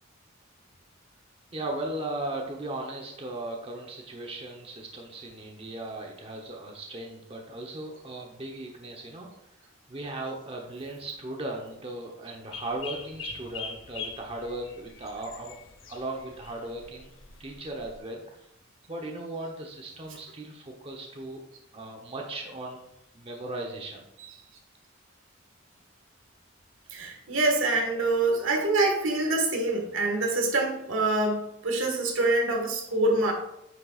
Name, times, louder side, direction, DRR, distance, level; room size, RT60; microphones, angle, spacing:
voice 1, 1.5-9.3 9.9-15.6 15.9-17.1 17.4-18.4 18.9-21.4 21.7-22.8 23.1-24.0 27.0-27.1, right 2 dB, 30° right, 1 dB, 0.9 m, -37 dB
sound 1, 12.5-18.0, left 5 dB, 80° left, 0.9 m, -42 dB
voice 2, 26.9-33.3, right 2 dB, 85° right, 2 dB, 1.7 m, -25 dB
9.2 x 6.4 x 2.4 m, 0.83 s
head